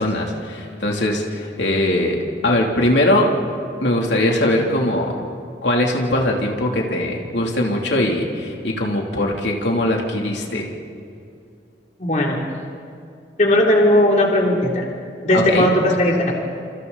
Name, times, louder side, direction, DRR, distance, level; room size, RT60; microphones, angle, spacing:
voice 1, 0.0-3.3 3.8-5.1 5.6-10.7 15.3-15.7, left 1 dB, 85° left, 0 dB, 3.1 m, -20 dB
voice 2, 12.0-12.4 13.4-14.8 15.2-16.3, left 1 dB, 40° left, -1 dB, 3.3 m, -17 dB
29.5 x 28.0 x 4.1 m, 2.4 s
head